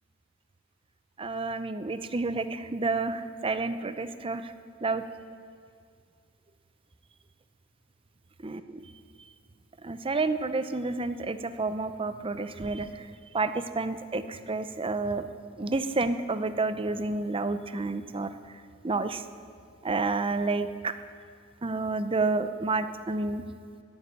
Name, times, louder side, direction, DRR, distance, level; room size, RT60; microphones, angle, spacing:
voice 1, 1.2-4.5 4.8-5.0 8.4-8.6 9.8-13.1 13.3-15.3 15.6-18.3 18.8-19.2 19.8-20.9 21.6-23.4, right 3 dB, 25° right, 11 dB, 0.6 m, -30 dB
14.5 x 9.7 x 9.9 m, 2.2 s
head